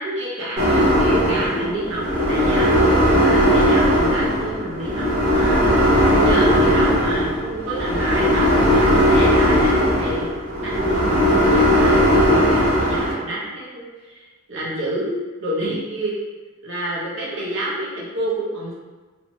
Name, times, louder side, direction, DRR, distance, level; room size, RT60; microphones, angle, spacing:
voice 1, 0.0-10.3 10.6-16.1 16.6-18.7, right 1 dB, 70° right, -6 dB, 0.8 m, -29 dB
sound 1, 0.6-13.1, equal, 45° right, 1.1 m, -17 dB
2.9 x 2.1 x 2.9 m, 1.3 s
head